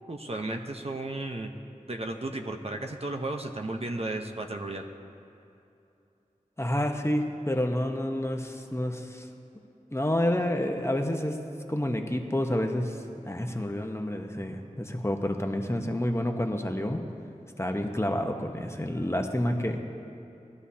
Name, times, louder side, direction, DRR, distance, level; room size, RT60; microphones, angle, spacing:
voice 1, 0.1-1.5 1.9-4.8, right 2 dB, 45° right, 3 dB, 0.9 m, -34 dB
voice 2, 6.6-9.3 9.9-11.4 11.7-13.0 13.3-17.0 17.6-19.8, left 1 dB, 20° left, 3 dB, 1.0 m, -29 dB
21.0 x 12.0 x 2.8 m, 2.8 s
wide cardioid pair, 45°, 14 cm